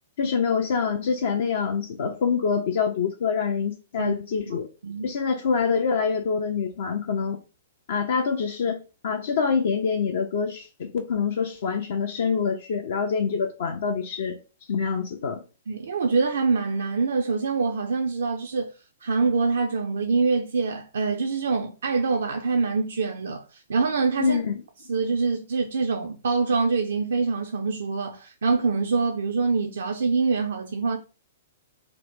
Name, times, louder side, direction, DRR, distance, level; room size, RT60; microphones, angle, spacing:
voice 1, 0.2-4.7 5.0-7.4 7.9-14.4 14.7-15.4 24.2-24.5, left 6 dB, 55° left, 0.4 m, -25 dB
voice 2, 4.8-5.1 15.7-18.7 19.0-24.4 24.9-31.0, right 4 dB, 65° right, 0.3 m, -25 dB
2.8 x 2.0 x 3.5 m
figure-of-eight pair, 110°, 0 cm